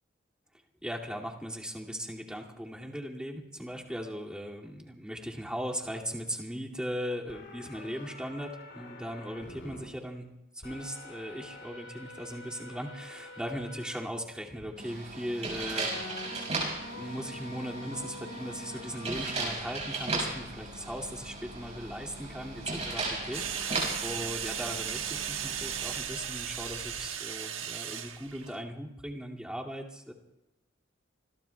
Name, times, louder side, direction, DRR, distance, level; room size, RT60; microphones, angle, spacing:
voice 1, 0.8-10.3 10.6-15.9 17.0-23.7 24.0-30.1, equal, 5° right, -3 dB, 2.4 m, -38 dB
sound 1, 7.3-9.9 10.6-14.0 14.6-14.7 15.9-27.1, left 1 dB, 65° left, 4.8 m, -48 dB
sound 2, 14.8-26.0, right 3 dB, 35° right, 6.0 m, -37 dB
sound 3, 23.3-28.6, right 9 dB, 85° right, 1.4 m, -36 dB
27.0 x 21.5 x 2.3 m, 0.94 s
head